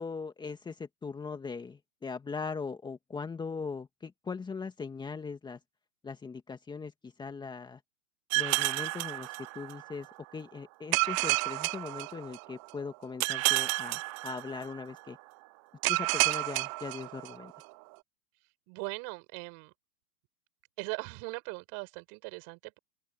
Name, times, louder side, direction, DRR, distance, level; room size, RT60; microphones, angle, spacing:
voice 1, 0.0-5.6 6.0-7.8 8.3-10.1 10.3-15.2 15.9-17.5, left 5 dB, 10° left, 2.1 m, -40 dB
sound 1, 8.3-9.9 10.9-12.6 13.2-14.8 15.8-17.6, right 26 dB, 25° right, 0.5 m, -30 dB
voice 2, 18.7-19.7 20.8-22.8, right 33 dB, 40° right, 4.8 m, -40 dB
open air
hypercardioid pair, 125°, 44 cm